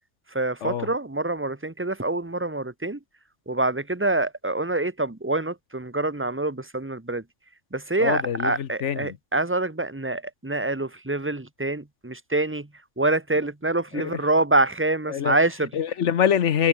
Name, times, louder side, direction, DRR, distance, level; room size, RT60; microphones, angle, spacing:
voice 1, 0.3-3.0 3.5-7.2 7.7-12.7 13.0-15.7, right 2 dB, 10° right, 1.2 m, -26 dB
voice 2, 8.0-9.2 13.9-14.2 15.1-15.4 15.7-16.7, left 8 dB, 65° left, 1.2 m, -24 dB
omnidirectional pair, 1.4 m